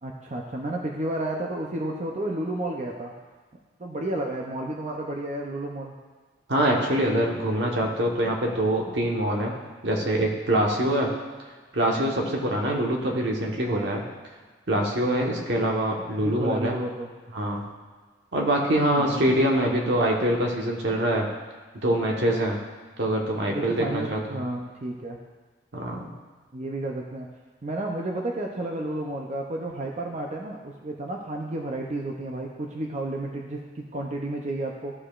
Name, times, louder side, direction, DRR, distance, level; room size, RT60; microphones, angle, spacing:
voice 1, 0.0-3.1 3.8-5.9 11.9-12.1 13.7-13.9 16.2-17.1 18.9-19.2 23.5-25.2 26.5-27.3 27.6-34.9, right 1 dB, 40° right, 0 dB, 0.6 m, -32 dB
voice 2, 6.5-9.5 9.8-11.1 11.7-14.0 14.7-16.8 17.3-17.6 18.3-21.3 21.8-22.6 23.0-24.4 25.7-26.1, right 1 dB, 75° right, -1 dB, 1.3 m, -24 dB
14.5 x 4.9 x 2.5 m, 1.4 s
head